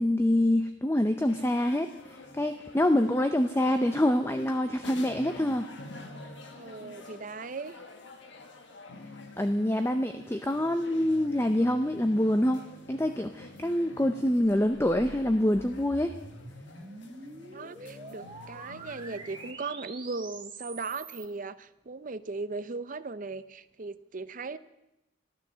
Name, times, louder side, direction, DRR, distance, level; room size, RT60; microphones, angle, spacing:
voice 1, 0.0-5.7 9.4-12.6 12.9-16.2, left 1 dB, 10° left, 8 dB, 0.5 m, -26 dB
sound 1, 1.3-19.5, left 2 dB, 60° left, 1.6 m, -48 dB
voice 2, 6.5-7.8 17.5-24.6, right 3 dB, 40° right, 13 dB, 0.6 m, -38 dB
sound 2, 14.6-21.3, right 3 dB, 25° right, 1.7 m, -46 dB
13.5 x 12.0 x 7.4 m, 0.93 s
head